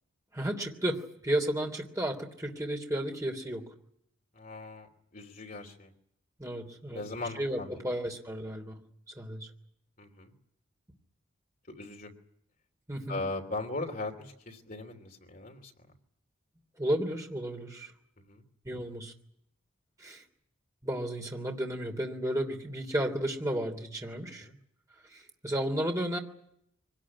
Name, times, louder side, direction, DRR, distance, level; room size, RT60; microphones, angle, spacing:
voice 1, 0.3-3.6 6.4-7.0 7.3-8.8 9.1-9.5 12.9-13.2 16.8-17.9 18.6-19.1 20.0-20.2 20.8-24.5 25.1-26.2, right 1 dB, 15° right, 2 dB, 3.1 m, -33 dB
voice 2, 4.3-5.9 6.9-7.8 10.0-10.3 11.7-12.1 13.1-15.7 18.2-18.4 24.4-24.5, left 2 dB, 45° left, 3 dB, 3.1 m, -39 dB
24.5 x 18.5 x 9.8 m, 0.74 s
head